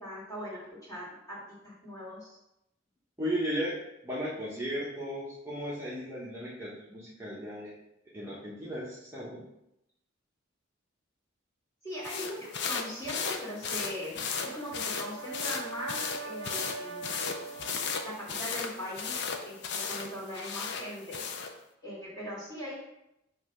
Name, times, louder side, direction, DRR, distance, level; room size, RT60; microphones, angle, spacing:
voice 1, 0.0-2.4 11.8-17.0 18.0-19.2 19.4-21.2 21.8-22.8, equal, 15° left, -8 dB, 2.4 m, -40 dB
voice 2, 3.2-3.8 4.0-7.7 8.1-9.4, equal, 10° right, -8 dB, 1.0 m, -35 dB
sound 1, 12.0-21.5, left 5 dB, 60° left, 0.6 m, -36 dB
Brass instrument, 14.1-18.3, right 4 dB, 70° right, 0.6 m, -42 dB
5.7 x 3.2 x 5.5 m, 0.85 s
head